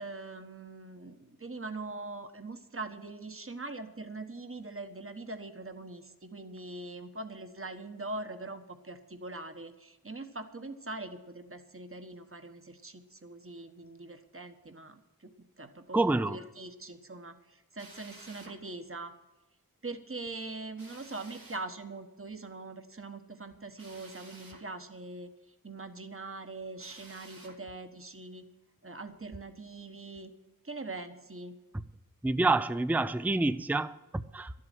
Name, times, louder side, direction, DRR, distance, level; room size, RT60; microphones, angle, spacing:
voice 1, 0.0-19.1 19.8-25.3 25.6-28.5 28.8-30.3 30.6-31.6, right 2 dB, 35° right, 8 dB, 1.3 m, -42 dB
voice 2, 15.9-16.4 32.2-34.5, right 2 dB, 5° right, 13 dB, 0.5 m, -28 dB
Drill, 17.8-18.6 20.8-21.7 23.8-24.7 26.8-27.6, right 2 dB, 70° right, 2.5 m, -52 dB
12.5 x 7.8 x 9.2 m, 1.0 s
wide cardioid pair, 45°, 36 cm